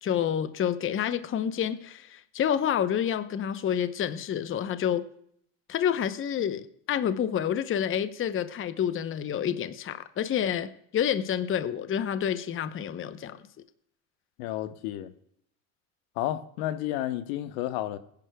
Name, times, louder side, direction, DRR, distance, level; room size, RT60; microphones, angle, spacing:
voice 1, 0.0-5.0 5.7-13.4, left 9 dB, 30° left, 0.8 m, -28 dB
voice 2, 14.4-15.1 16.2-18.0, left 13 dB, 70° left, 1.1 m, -31 dB
20.0 x 10.5 x 2.3 m
supercardioid pair, 105°, 42 cm